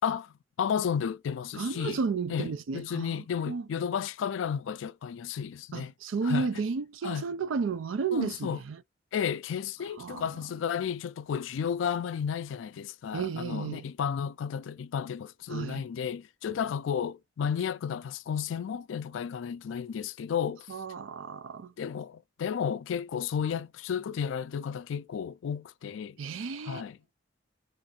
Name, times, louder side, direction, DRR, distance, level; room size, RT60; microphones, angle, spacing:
voice 1, 0.0-2.0 2.3-5.9 6.2-6.5 7.0-7.2 8.1-8.6 9.1-20.7 21.8-26.2 26.6-27.0, left 7 dB, 80° left, 0.3 m, -32 dB
voice 2, 1.5-3.7 5.7-8.8 10.0-10.3 13.1-13.8 15.5-15.8 20.7-21.7 26.2-26.8, right 5 dB, 90° right, 0.4 m, -33 dB
2.6 x 2.5 x 4.1 m
head